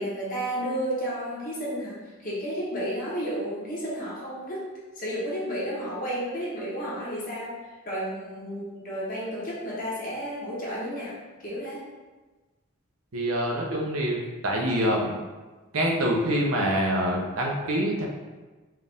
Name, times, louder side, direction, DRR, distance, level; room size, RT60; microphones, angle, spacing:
voice 1, 0.0-4.6 4.9-7.6 7.8-11.8, equal, 40° left, -7 dB, 1.3 m, -32 dB
voice 2, 13.1-14.2 14.4-15.1 15.7-18.1, equal, 85° right, -1 dB, 0.8 m, -25 dB
4.6 x 2.5 x 3.5 m, 1.2 s
head